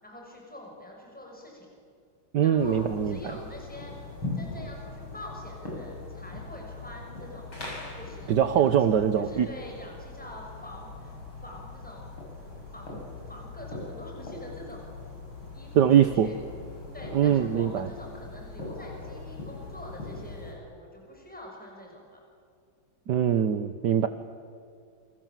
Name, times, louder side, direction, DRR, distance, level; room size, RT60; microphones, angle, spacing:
voice 1, 0.0-1.7 2.4-3.9 4.3-7.5 7.9-8.7 9.2-11.1 11.4-14.9 15.5-16.4 16.9-22.2, left 1 dB, 5° left, -1 dB, 6.1 m, -45 dB
voice 2, 2.3-3.2 8.3-9.5 15.7-16.3 17.1-17.9 23.1-24.1, right 9 dB, 60° right, 10 dB, 1.5 m, -22 dB
sound 1, 2.6-20.5, left 3 dB, 75° left, 8.2 m, -41 dB
29.0 x 26.0 x 7.6 m, 2.3 s
omnidirectional pair, 2.3 m